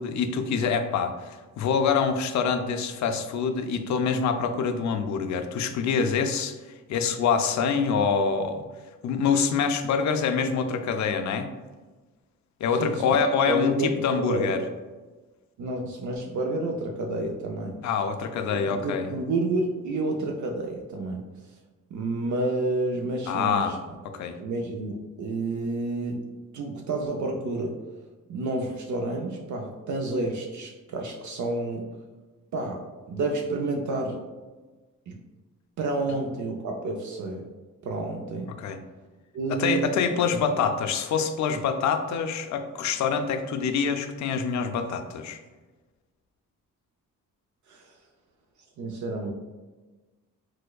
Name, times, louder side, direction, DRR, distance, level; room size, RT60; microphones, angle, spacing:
voice 1, 0.0-6.6 6.9-8.6 9.0-11.5 12.6-14.6 17.8-19.1 23.3-23.7 24.0-24.4 38.6-38.8 39.5-45.4, left 6 dB, 55° left, 8 dB, 0.4 m, -25 dB
voice 2, 12.8-13.2 13.5-13.9 14.1-14.6 15.6-17.8 18.4-21.2 21.9-23.8 24.4-26.3 26.5-27.8 28.3-31.9 32.5-32.8 33.1-34.2 35.1-35.2 35.8-37.4 37.8-38.5 39.3-39.9 47.7-47.9 48.8-49.3, right 2 dB, 60° right, 0 dB, 0.5 m, -29 dB
4.5 x 2.1 x 2.3 m, 1.2 s
cardioid pair, 65°, 33 cm